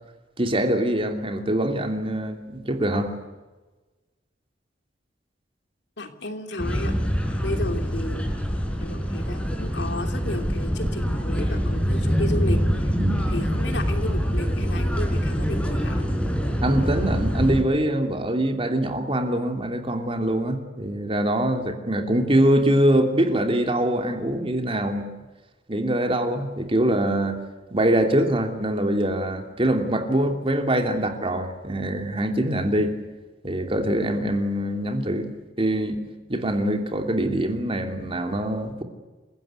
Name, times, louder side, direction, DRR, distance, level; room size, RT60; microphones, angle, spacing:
voice 1, 0.4-3.1 13.0-13.2 16.6-25.1 25.7-27.4 27.7-33.0 33.4-35.3 35.6-36.0 36.3-38.8, right 1 dB, 30° right, 5 dB, 2.9 m, -23 dB
voice 2, 6.0-6.9 7.4-8.3 8.8-12.8 13.3-16.0, left 1 dB, 70° left, 5 dB, 3.0 m, -33 dB
sound 1, 6.6-17.6, equal, 5° left, 3.7 m, -25 dB
28.0 x 16.5 x 9.6 m, 1.2 s
head